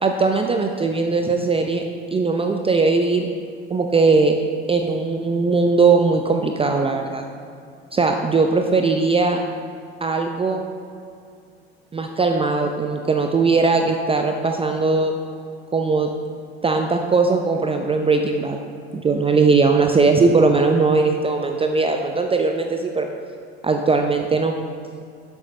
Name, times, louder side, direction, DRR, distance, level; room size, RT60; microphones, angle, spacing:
voice 1, 0.0-1.8 2.1-3.3 3.7-4.4 4.7-7.2 7.9-9.4 10.0-10.6 11.9-15.1 15.7-16.1 16.6-18.6 18.9-23.1 23.6-24.5, right 4 dB, 15° right, 4 dB, 0.6 m, -19 dB
10.5 x 8.0 x 3.2 m, 2.4 s
hypercardioid pair, 65°, 32 cm